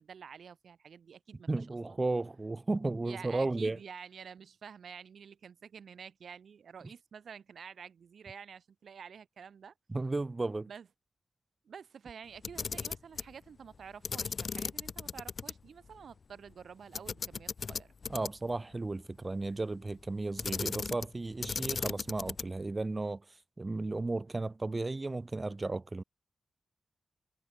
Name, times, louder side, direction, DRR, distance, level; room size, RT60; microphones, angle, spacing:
voice 1, 0.0-2.0 3.0-9.7 10.7-10.9 11.6-17.9, right 7 dB, 75° right, 3.0 m, -49 dB
voice 2, 1.5-3.8 9.9-10.7 18.1-23.2 23.6-26.0, right 2 dB, 35° right, 0.7 m, -34 dB
Camera, 12.4-13.3 14.0-15.5 15.9-16.0 16.9-18.5 20.4-21.1 21.4-22.6, left 5 dB, 60° left, 0.5 m, -37 dB
cardioid pair, 50°, 0 cm